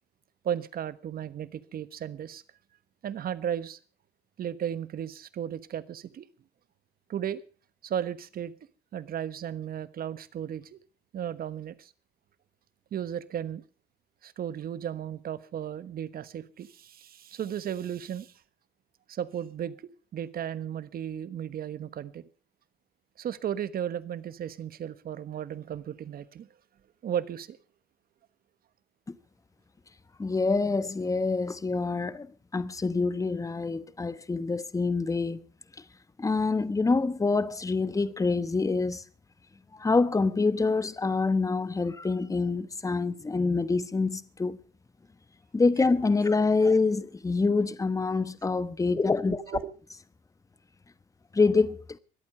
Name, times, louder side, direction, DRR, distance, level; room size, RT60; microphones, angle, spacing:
voice 1, 0.4-2.4 3.0-3.8 4.4-6.3 7.1-7.4 7.8-8.5 8.9-10.8 11.1-11.9 12.9-13.6 14.2-18.4 19.1-22.2 23.2-26.5 27.0-27.6 49.3-49.7, right 9 dB, 50° right, 1.2 m, -35 dB
voice 2, 30.2-35.4 36.2-39.0 39.7-44.6 45.5-49.4 51.3-52.0, left 3 dB, 15° left, 1.0 m, -26 dB
23.5 x 8.6 x 5.5 m
supercardioid pair, 80°, 20 cm